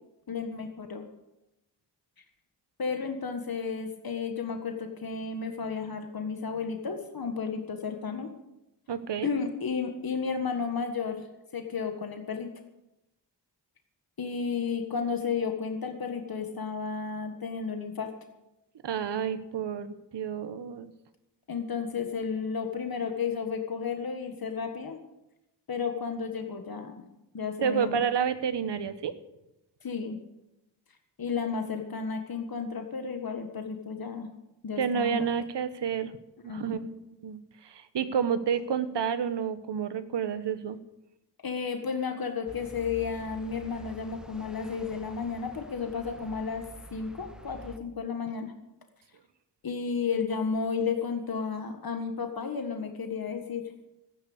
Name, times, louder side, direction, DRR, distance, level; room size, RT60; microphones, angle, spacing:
voice 1, 0.3-1.0 2.8-8.3 9.2-11.3 11.5-12.5 14.2-18.1 21.5-25.0 25.7-27.0 27.3-28.0 29.8-30.2 31.2-34.3 34.6-35.3 36.5-36.9 41.4-46.6 46.9-48.5 49.6-53.6, left 5 dB, 60° left, 5 dB, 1.7 m, -32 dB
voice 2, 8.9-9.3 18.8-20.9 27.6-29.1 34.8-36.1 36.4-37.0 37.2-40.8, right 7 dB, 85° right, 12 dB, 1.2 m, -30 dB
sound 1, 42.5-47.8, right 1 dB, ahead, 1.1 m, -48 dB
14.5 x 9.8 x 8.0 m, 0.92 s
wide cardioid pair, 95°, 41 cm